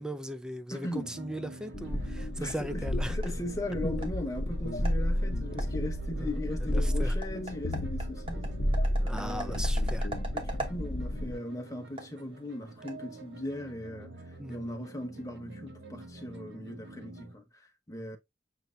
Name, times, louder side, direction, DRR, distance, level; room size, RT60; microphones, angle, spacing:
voice 1, 0.0-3.2 6.2-6.4 6.7-7.2 9.0-10.1 14.4-14.6, right 1 dB, 5° right, 0.3 m, -38 dB
voice 2, 0.7-1.2 2.4-8.7 9.1-9.6 10.3-14.2 14.5-18.2, left 1 dB, 20° left, 0.9 m, -38 dB
sound 1, 0.9-17.4, right 2 dB, 75° right, 0.9 m, -49 dB
sound 2, 1.7-11.4, left 1 dB, 55° left, 0.9 m, -31 dB
sound 3, 1.8-13.7, right 2 dB, 30° right, 1.0 m, -45 dB
6.7 x 2.9 x 2.7 m
head